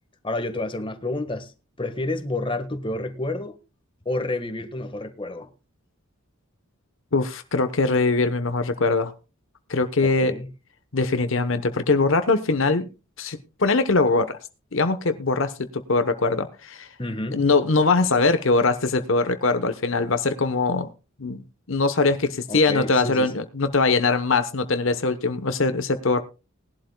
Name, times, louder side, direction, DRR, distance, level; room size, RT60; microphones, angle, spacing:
voice 1, 0.2-1.5 1.8-3.6 4.0-5.5 10.0-10.5 17.0-17.4 22.5-23.3, left 2 dB, 25° left, 1.4 m, -29 dB
voice 2, 7.1-9.1 9.7-10.3 10.9-12.9 13.2-14.4 14.7-16.9 17.3-20.9 21.2-26.2, left 3 dB, 60° left, 1.0 m, -22 dB
19.5 x 11.5 x 2.2 m
head